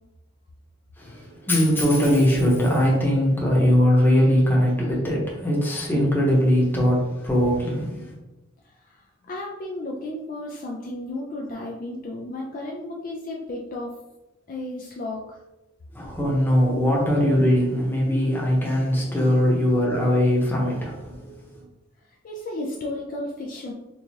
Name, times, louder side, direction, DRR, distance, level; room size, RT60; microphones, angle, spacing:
voice 1, 1.0-8.1 15.9-21.6, equal, 10° left, -4 dB, 0.9 m, -21 dB
voice 2, 8.6-14.0 14.5-15.4 22.2-23.7, left 1 dB, 40° left, -2 dB, 0.4 m, -33 dB
4.5 x 2.3 x 2.8 m, 1.0 s
head